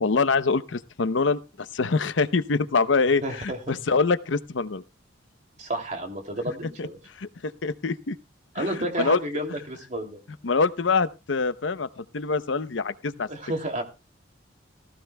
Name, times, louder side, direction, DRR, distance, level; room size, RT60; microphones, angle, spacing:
voice 1, 0.0-4.8 6.8-6.9 7.2-8.2 8.6-9.2 10.4-13.3, left 4 dB, 75° left, 13 dB, 0.7 m, -25 dB
voice 2, 3.2-3.6 5.6-7.0 8.5-10.2 13.3-13.8, right 1 dB, 40° right, 4 dB, 2.6 m, -31 dB
18.5 x 14.5 x 2.2 m, 0.28 s
head